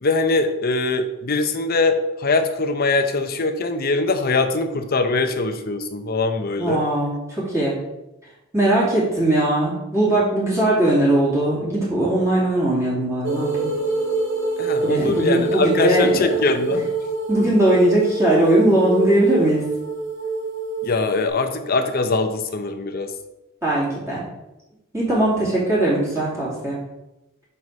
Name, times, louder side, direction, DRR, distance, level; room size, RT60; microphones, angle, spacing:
voice 1, 0.0-6.8 14.6-16.8 20.8-23.1, left 3 dB, 45° left, 7 dB, 0.7 m, -22 dB
voice 2, 6.6-7.8 8.5-13.7 14.8-16.3 16.7-16.8 17.3-19.6 23.6-24.2 24.9-26.8, right 1 dB, 15° right, -8 dB, 2.7 m, -20 dB
sound 1, 13.2-21.3, right 3 dB, 65° right, 2.3 m, -25 dB
5.7 x 4.8 x 5.3 m, 0.96 s
head